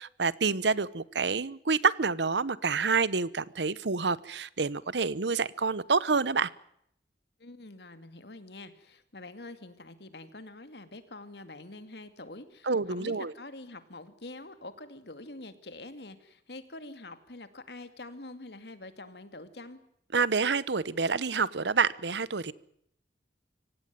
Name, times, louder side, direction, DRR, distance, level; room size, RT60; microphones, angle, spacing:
voice 1, 0.0-6.5 12.7-13.3 20.1-22.5, right 4 dB, 80° right, 20 dB, 0.9 m, -28 dB
voice 2, 7.4-19.8, left 2 dB, 70° left, 11 dB, 2.3 m, -46 dB
25.0 x 17.0 x 9.3 m, 0.73 s
head